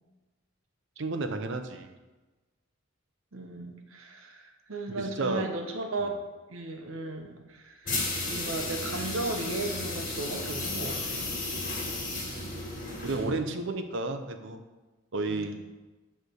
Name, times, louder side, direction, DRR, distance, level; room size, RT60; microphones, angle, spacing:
voice 1, 1.0-1.9 4.9-5.5 13.0-14.6 15.1-15.6, right 3 dB, 65° right, 7 dB, 0.7 m, -32 dB
voice 2, 3.3-6.1 6.5-7.9 8.2-11.4 15.3-15.6, right 2 dB, 85° right, 3 dB, 1.0 m, -36 dB
sound 1, 7.8-13.5, left 2 dB, 45° left, 2.2 m, -34 dB
9.1 x 3.4 x 6.4 m, 1.2 s
head